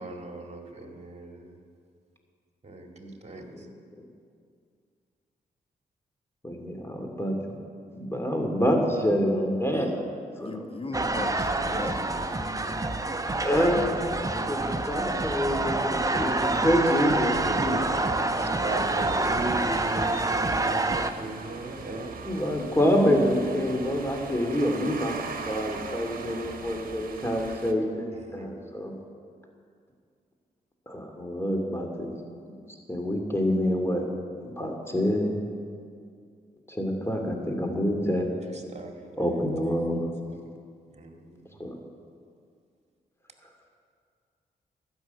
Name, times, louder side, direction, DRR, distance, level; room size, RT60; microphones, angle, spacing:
voice 1, 0.0-1.6 2.6-3.7 9.7-9.9 17.3-18.0 18.4-22.1 28.1-28.6 38.5-40.0 40.5-40.6 40.9-41.6, right 2 dB, 40° right, 3 dB, 2.0 m, -38 dB
voice 2, 6.4-7.6 7.9-10.0 10.4-10.7 10.9-11.0 13.4-17.4 22.2-25.2 25.4-28.9 30.9-32.1 32.9-34.0 34.4-35.3 36.7-38.3 39.1-40.1 41.6-41.7, equal, 15° left, 2 dB, 2.7 m, -27 dB
voice 3, 10.4-12.4, left 2 dB, 30° left, 6 dB, 1.3 m, -37 dB
sound 1, 10.9-21.1, right 2 dB, 20° right, 0.8 m, -27 dB
sound 2, 11.8-27.7, right 5 dB, 55° right, 1.2 m, -42 dB
12.5 x 6.3 x 9.2 m, 2.2 s
supercardioid pair, 45°, 18 cm